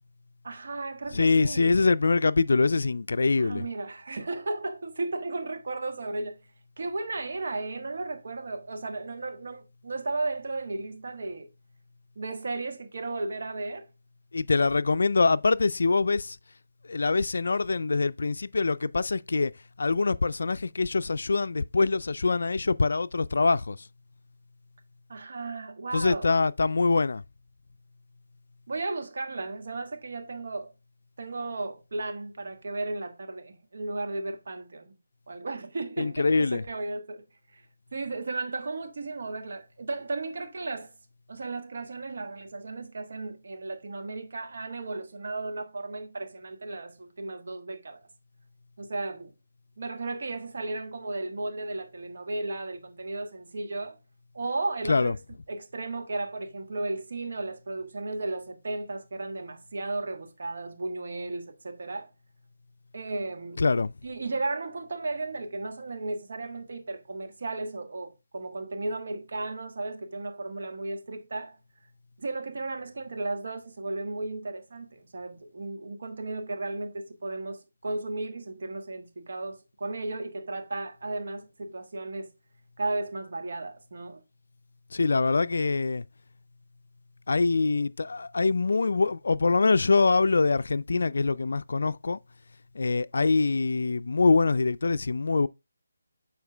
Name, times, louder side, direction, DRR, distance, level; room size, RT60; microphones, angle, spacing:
voice 1, 0.4-1.7 3.4-6.4 6.8-11.5 12.1-13.9 25.1-26.3 28.7-30.7 31.2-34.9 35.3-37.2 37.5-37.6 37.9-40.9 41.3-48.0 48.8-49.3 49.8-54.0 54.3-55.2 55.5-62.1 62.9-63.6 64.0-71.6 72.2-82.3 82.8-84.2, right 2 dB, 60° right, 1.4 m, -34 dB
voice 2, 1.1-3.6 14.3-16.4 16.9-19.5 19.8-23.9 25.9-27.2 36.0-36.6 54.9-55.1 63.6-63.9 84.9-86.0 87.3-92.2 92.7-95.5, left 3 dB, 70° left, 0.3 m, -24 dB
7.0 x 4.4 x 3.3 m
figure-of-eight pair, 160°, 0 cm